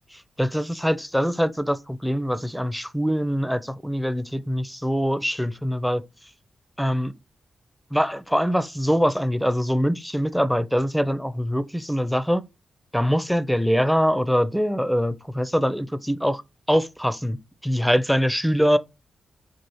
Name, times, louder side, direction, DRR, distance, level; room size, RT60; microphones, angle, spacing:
voice 1, 0.1-6.0 6.8-7.1 7.9-12.4 12.9-16.4 16.7-18.8, equal, ahead, 0.5 m, -23 dB
4.7 x 2.4 x 3.0 m
cardioid pair, 55°, 0 cm